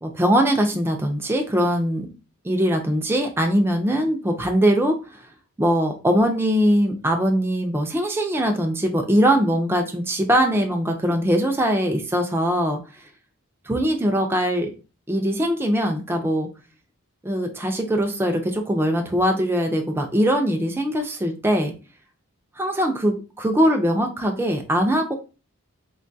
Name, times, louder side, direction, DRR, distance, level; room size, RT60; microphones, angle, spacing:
voice 1, 0.0-2.1 2.4-5.0 5.6-12.8 13.7-14.7 15.1-16.5 17.2-21.7 22.6-25.1, equal, 10° right, 3 dB, 0.3 m, -21 dB
3.6 x 2.3 x 2.6 m, 0.32 s
head